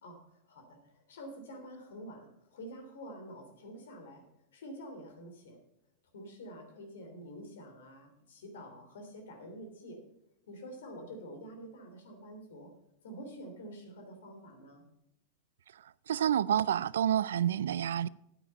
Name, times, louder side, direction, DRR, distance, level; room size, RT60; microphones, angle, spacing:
voice 1, 0.0-4.3 4.5-5.6 6.1-10.0 10.5-12.7 13.0-14.8, equal, 75° left, 3.1 m, -48 dB
voice 2, 16.1-18.1, right 10 dB, 80° right, 0.4 m, -28 dB
9.6 x 9.0 x 5.3 m
hypercardioid pair, 105°, 0 cm